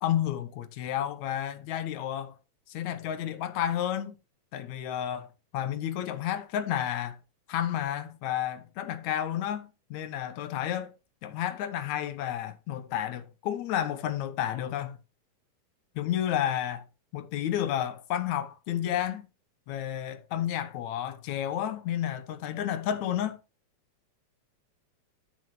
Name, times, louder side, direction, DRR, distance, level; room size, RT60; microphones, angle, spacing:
voice 1, 0.0-2.4 2.7-4.1 4.5-5.3 5.5-7.2 7.5-10.9 11.2-15.0 16.0-16.8 17.1-19.3 19.7-23.4, left 10 dB, 75° left, 2.4 m, -31 dB
10.0 x 8.9 x 3.2 m
omnidirectional pair, 3.3 m